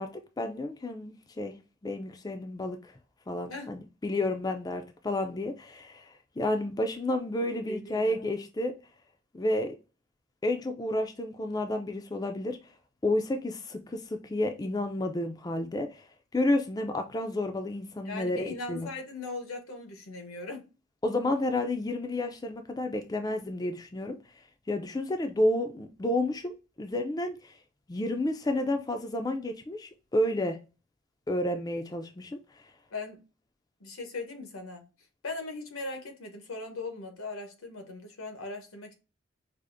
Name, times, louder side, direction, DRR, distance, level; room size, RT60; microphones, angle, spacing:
voice 1, 0.0-1.6 1.8-2.9 3.3-6.1 6.4-8.7 9.3-9.8 10.4-12.6 13.0-16.0 16.3-18.9 21.0-24.2 24.7-27.5 27.9-30.6 31.3-32.4, left 1 dB, 20° left, 0.3 m, -31 dB
voice 2, 7.7-8.3 18.0-20.7 32.9-33.2 33.8-34.9 35.2-38.9, left 3 dB, 85° left, 1.0 m, -39 dB
4.8 x 2.5 x 2.5 m
head